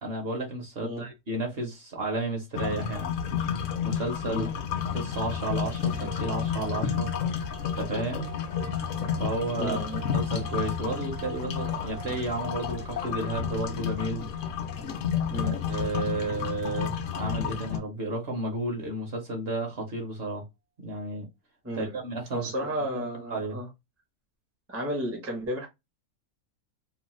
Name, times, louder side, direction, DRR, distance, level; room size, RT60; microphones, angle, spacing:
voice 1, 0.0-3.1 3.8-4.5 4.9-7.1 7.8-8.3 9.2-9.8 10.1-14.2 15.4-20.4 20.8-21.3 21.7-23.0 23.3-23.6, right 2 dB, 50° right, 0.9 m, -32 dB
sound 1, 2.5-17.8, left 8 dB, 70° left, 0.8 m, -31 dB
sound 2, 5.7-17.1, right 7 dB, 90° right, 1.2 m, -47 dB
voice 2, 9.6-10.0 15.3-15.6 21.6-22.0 22.3-23.7 24.7-25.7, right 1 dB, 15° right, 0.5 m, -33 dB
3.0 x 2.1 x 3.0 m
omnidirectional pair, 1.5 m